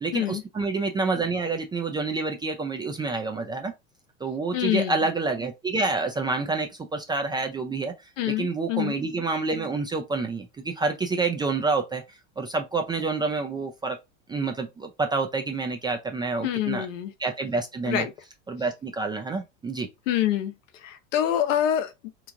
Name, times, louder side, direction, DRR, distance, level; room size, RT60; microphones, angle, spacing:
voice 1, 0.0-3.7 4.2-7.9 8.3-12.0 12.4-14.0 14.3-16.9 17.2-18.1 18.5-19.9, right 3 dB, 10° right, 0.3 m, -28 dB
voice 2, 4.5-5.0 8.2-9.0 16.4-17.1 17.9-18.1 20.1-20.5 20.8-21.9, left 11 dB, 75° left, 0.8 m, -26 dB
3.1 x 2.4 x 3.6 m
hypercardioid pair, 105°, 38 cm